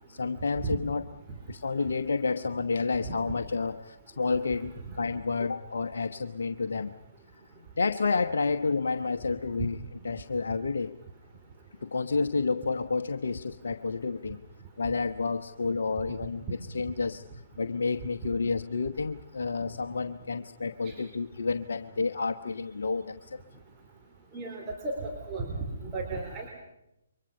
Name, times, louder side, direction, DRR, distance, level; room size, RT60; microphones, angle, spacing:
voice 1, 0.1-1.0 1.5-6.9 7.8-9.8 10.0-10.9 11.8-14.4 14.8-16.4 16.7-17.2 17.6-23.4, left 4 dB, 60° left, 7 dB, 1.0 m, -30 dB
voice 2, 24.3-25.6 25.9-26.5, right 3 dB, 20° right, -1 dB, 4.1 m, -34 dB
29.5 x 24.0 x 5.5 m, 0.85 s
figure-of-eight pair, 135°, 0 cm